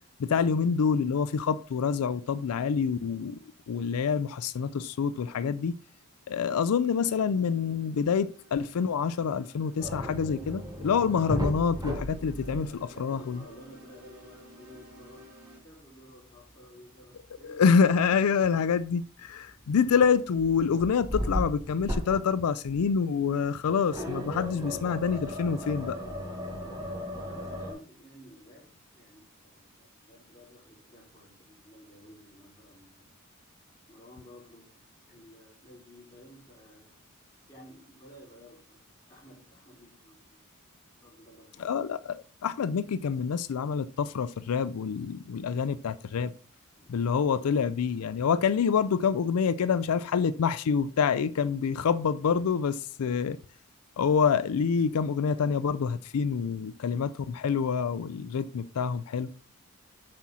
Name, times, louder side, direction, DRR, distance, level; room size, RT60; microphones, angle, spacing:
voice 1, 0.2-3.4 3.7-5.7 6.3-12.7 13.0-13.4 17.4-26.0 41.6-46.3 46.9-53.4 54.0-59.3, left 6 dB, 80° left, 0.4 m, -27 dB
sound 1, 6.8-15.6, left 1 dB, 65° right, 4.4 m, -55 dB
sound 2, 9.8-13.0 13.3-13.5 17.0-17.1 19.4-19.8 20.4-22.4 22.7-22.9 23.9-27.7, equal, 20° right, 3.2 m, -35 dB
voice 2, 12.4-15.3 15.5-17.8 27.2-33.1 33.9-34.7 35.1-36.9 37.5-40.4 41.0-41.8 46.8-47.0, equal, 15° left, 5.1 m, -53 dB
7.6 x 6.1 x 4.2 m
head